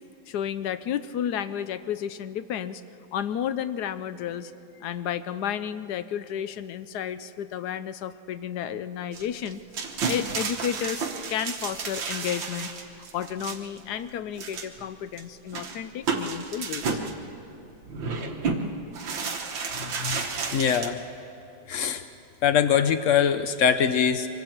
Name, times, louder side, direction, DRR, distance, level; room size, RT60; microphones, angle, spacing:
voice 1, 0.3-2.8 3.1-4.5 4.8-9.6 10.1-11.0 11.3-17.0, left 9 dB, 70° left, 12 dB, 1.0 m, -32 dB
sound 1, 9.1-13.8 14.4-14.8 15.2-15.3 15.5-17.1 17.9-18.6 18.9-20.9, right 5 dB, 80° right, 2.1 m, -31 dB
voice 2, 19.8-20.3 20.5-21.0 21.7-22.0 22.4-24.3, left 8 dB, 90° left, 10 dB, 0.6 m, -23 dB
25.5 x 23.0 x 4.5 m, 2.8 s
omnidirectional pair, 2.1 m